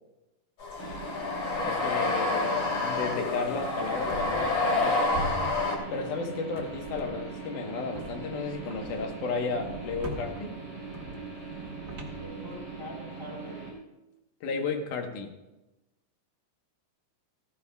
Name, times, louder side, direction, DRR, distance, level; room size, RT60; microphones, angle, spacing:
sound 1, 0.6-5.8, left 3 dB, 50° left, 3.3 m, -28 dB
sound 2, 0.8-13.7, right 4 dB, 35° right, 4.4 m, -40 dB
voice 1, 1.6-5.1 5.9-10.5 14.4-15.3, left 4 dB, 75° left, 3 dB, 2.7 m, -33 dB
sound 3, 4.1-4.9 5.1-6.2 6.6-7.4 7.9-13.0, right 2 dB, 55° right, 0.9 m, -42 dB
voice 2, 12.2-13.6 14.5-14.6 15.0-15.2, left 1 dB, 5° left, -4 dB, 4.0 m, -44 dB
16.0 x 14.0 x 2.3 m, 1.0 s
omnidirectional pair, 3.7 m